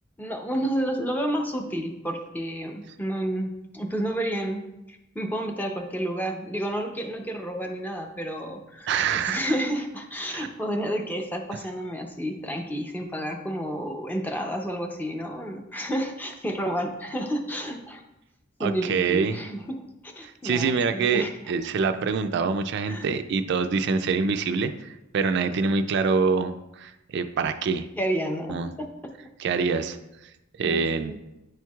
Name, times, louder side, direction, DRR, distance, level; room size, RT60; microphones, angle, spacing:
voice 1, 0.2-18.0 18.6-21.5 22.9-23.1 28.0-29.1 30.6-31.2, right 1 dB, 10° left, 3 dB, 0.6 m, -30 dB
voice 2, 8.9-9.4 10.3-10.5 18.6-19.4 20.2-27.9 28.5-28.7 29.4-30.0 30.6-31.1, right 5 dB, 60° right, 9 dB, 0.4 m, -25 dB
9.3 x 4.5 x 2.3 m, 0.94 s
head